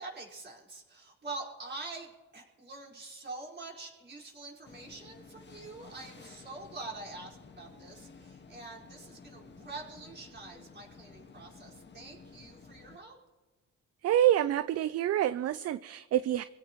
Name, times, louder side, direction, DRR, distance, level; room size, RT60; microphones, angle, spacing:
voice 1, 0.0-13.2, right 3 dB, 35° right, -3 dB, 5.0 m, -45 dB
sound 1, 4.6-13.0, left 4 dB, 35° left, 1.6 m, -53 dB
voice 2, 14.0-16.4, right 12 dB, 55° right, 15 dB, 0.5 m, -27 dB
26.0 x 16.5 x 3.1 m, 1.3 s
cardioid pair, 90°, 30 cm